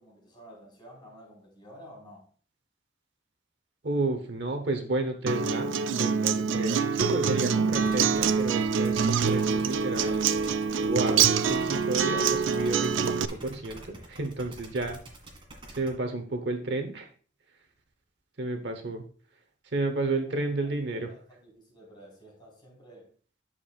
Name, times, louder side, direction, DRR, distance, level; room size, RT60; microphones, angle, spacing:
voice 1, 0.0-2.3 20.1-23.1, equal, 25° left, -3 dB, 4.2 m, -51 dB
voice 2, 3.8-10.3 10.8-15.0 15.7-17.1 18.4-19.0 19.7-21.1, right 2 dB, 60° right, 6 dB, 1.0 m, -31 dB
Acoustic guitar, 5.3-13.2, right 6 dB, 80° right, 0.4 m, -25 dB
sound 1, 7.6-15.9, right 1 dB, 25° right, 1.8 m, -46 dB
10.5 x 6.8 x 2.4 m, 0.42 s
head